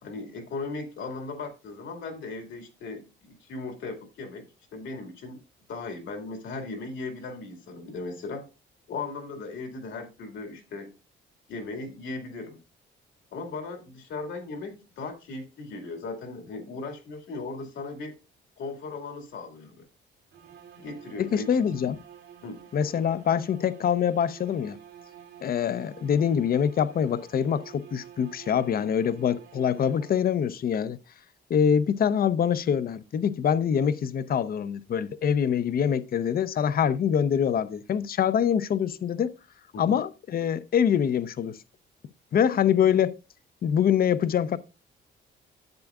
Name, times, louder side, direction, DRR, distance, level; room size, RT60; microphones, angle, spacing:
voice 1, 0.0-4.4 4.7-5.4 5.7-8.5 8.9-10.9 11.5-12.6 13.3-18.1 18.6-19.8 20.8-21.5 22.4-22.6 39.7-40.0, left 3 dB, 75° left, 2.1 m, -37 dB
sound 1, 20.3-30.5, right 9 dB, 85° right, 2.6 m, -49 dB
voice 2, 21.2-22.0 22.7-24.8 25.4-31.0 31.5-39.3 39.8-41.6 42.3-43.1 43.6-44.6, left 8 dB, 50° left, 0.6 m, -24 dB
10.5 x 7.8 x 2.4 m
cardioid pair, 90°, 20 cm